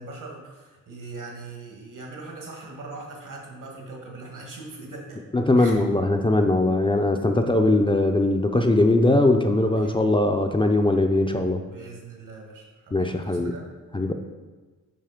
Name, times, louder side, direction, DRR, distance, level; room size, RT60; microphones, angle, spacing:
voice 1, 0.0-5.2 5.6-5.7 9.7-10.0 11.7-13.6, right 3 dB, 70° right, -1 dB, 1.6 m, -41 dB
voice 2, 5.3-11.6 12.9-13.5 13.9-14.1, left 2 dB, 15° left, 4 dB, 0.4 m, -20 dB
5.7 x 4.9 x 5.0 m, 1.3 s
wide cardioid pair, 110°, 32 cm